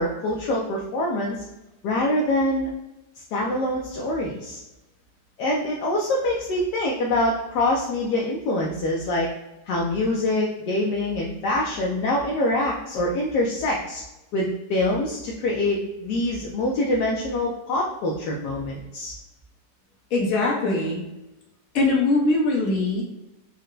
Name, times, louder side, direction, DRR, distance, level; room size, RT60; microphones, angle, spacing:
voice 1, 0.0-1.4 1.8-2.7 3.3-4.6 5.4-9.3 9.7-14.0 14.3-19.1, left 1 dB, 75° left, -2 dB, 1.2 m, -25 dB
voice 2, 20.1-21.0 21.7-23.0, left 2 dB, 55° left, -2 dB, 1.4 m, -21 dB
4.3 x 2.2 x 3.8 m, 0.97 s
omnidirectional pair, 1.9 m